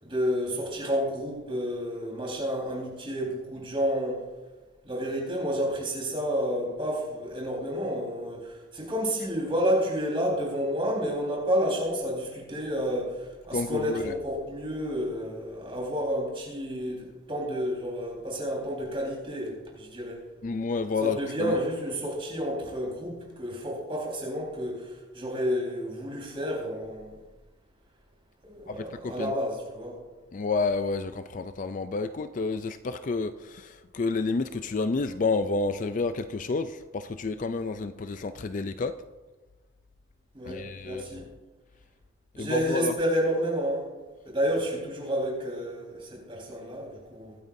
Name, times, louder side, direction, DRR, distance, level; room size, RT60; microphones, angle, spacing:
voice 1, 0.0-4.2 4.8-20.2 21.0-27.2 28.4-30.0 40.3-41.3 42.4-43.9 44.2-47.4, equal, 25° right, -3 dB, 4.3 m, -30 dB
voice 2, 13.5-14.1 20.4-21.6 28.7-29.3 30.3-38.9 40.4-41.0 42.4-42.9, left 3 dB, 40° left, 10 dB, 0.4 m, -30 dB
23.5 x 9.0 x 2.7 m, 1.2 s
head